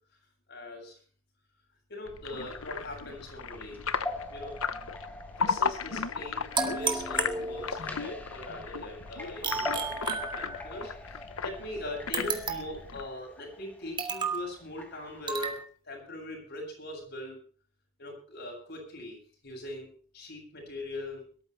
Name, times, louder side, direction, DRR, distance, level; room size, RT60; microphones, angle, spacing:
voice 1, 0.5-1.0 1.9-3.8 4.3-4.6 5.3-15.6 15.8-17.4 18.0-19.9 20.1-21.3, left 1 dB, 55° left, 1 dB, 7.9 m, -41 dB
sound 1, 2.1-13.1, left 5 dB, 85° left, 1.0 m, -36 dB
sound 2, 2.3-15.6, left 1 dB, 10° left, 2.2 m, -43 dB
sound 3, 6.6-8.0 9.4-10.9 12.1-12.9 14.0-14.5 15.3-15.6, right 5 dB, 25° right, 2.1 m, -33 dB
22.5 x 13.5 x 3.3 m, 0.41 s
head